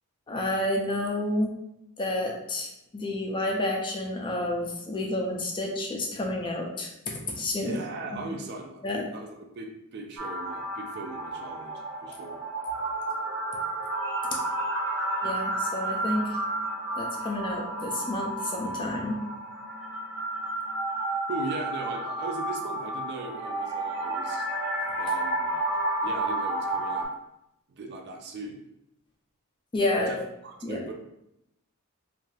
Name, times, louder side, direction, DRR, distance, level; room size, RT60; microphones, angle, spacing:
voice 1, 0.3-1.5 2.0-7.8 8.1-8.3 8.8-9.1 15.2-16.4 17.0-19.2 29.7-30.2 30.6-30.8, left 1 dB, 20° left, 0 dB, 0.4 m, -30 dB
voice 2, 7.6-12.4 21.3-24.5 25.0-25.6 26.0-27.1 27.8-28.6 30.0-30.9, right 3 dB, 50° right, 2 dB, 0.4 m, -39 dB
sound 1, 10.2-27.1, right 2 dB, 75° right, 0.8 m, -31 dB
2.6 x 2.4 x 3.2 m, 0.84 s
head